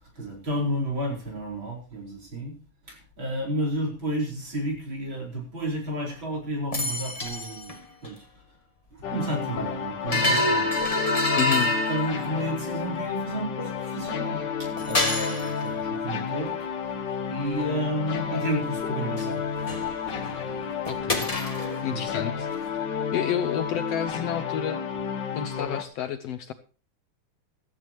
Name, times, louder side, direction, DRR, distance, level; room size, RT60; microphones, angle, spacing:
voice 1, 0.0-2.5 2.9-7.7 8.0-8.2 8.9-10.8 11.1-11.2 11.9-16.6 17.3-19.4 21.9-22.2, right 1 dB, 40° right, 0 dB, 5.3 m, -31 dB
sound 1, 6.7-7.8 8.0-8.1 10.1-12.5 14.8-15.6 19.2-19.3 19.5-20.5 20.9-21.9, left 1 dB, 15° left, 1.7 m, -27 dB
sound 2, 9.0-25.8, left 6 dB, 45° left, 1.6 m, -31 dB
voice 2, 11.4-11.7 20.9-21.3 21.8-22.8 23.1-24.8 25.3-26.5, left 9 dB, 70° left, 10 dB, 1.7 m, -30 dB
16.0 x 14.0 x 3.0 m, 0.36 s
omnidirectional pair, 3.4 m